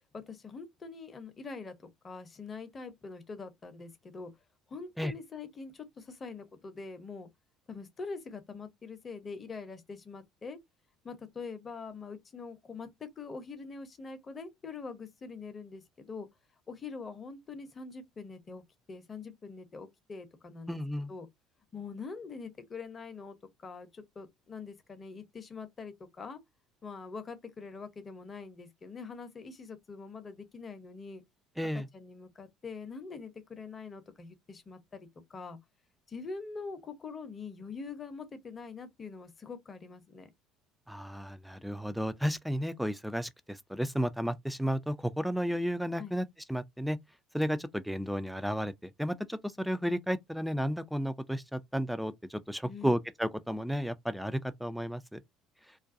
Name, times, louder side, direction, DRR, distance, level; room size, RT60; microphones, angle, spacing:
voice 1, 0.1-4.3 4.7-7.3 7.7-10.6 11.0-16.3 16.7-18.6 18.9-20.8 21.1-21.3 21.7-26.4 26.8-31.2 31.7-35.6 36.1-40.3 46.0-46.2 52.6-53.0, left 4 dB, 35° left, 0.7 m, -44 dB
voice 2, 20.7-21.1 31.6-31.9 40.9-47.0 47.3-55.2, equal, ahead, 0.3 m, -33 dB
2.4 x 2.2 x 2.5 m
hypercardioid pair, 60°, 0 cm